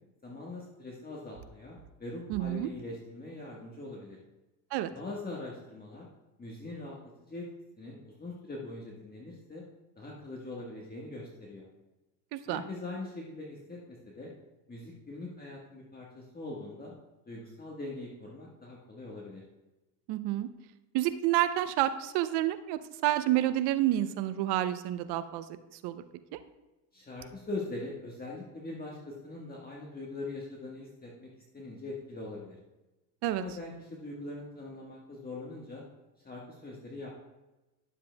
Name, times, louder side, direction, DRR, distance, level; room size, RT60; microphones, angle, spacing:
voice 1, 0.2-4.2 4.9-6.1 6.4-7.5 7.8-9.6 10.0-11.7 12.5-14.3 14.7-16.9 17.3-19.4 26.9-32.6 33.4-35.8 36.2-37.1, left 2 dB, 20° left, -3 dB, 1.5 m, -42 dB
voice 2, 2.3-2.7 4.7-4.9 12.3-12.6 20.1-20.5 20.9-25.4 25.8-26.0 26.3-26.4 33.2-33.4, right 13 dB, 55° right, 12 dB, 0.7 m, -29 dB
11.5 x 7.4 x 2.3 m, 1.1 s
hypercardioid pair, 85°, 49 cm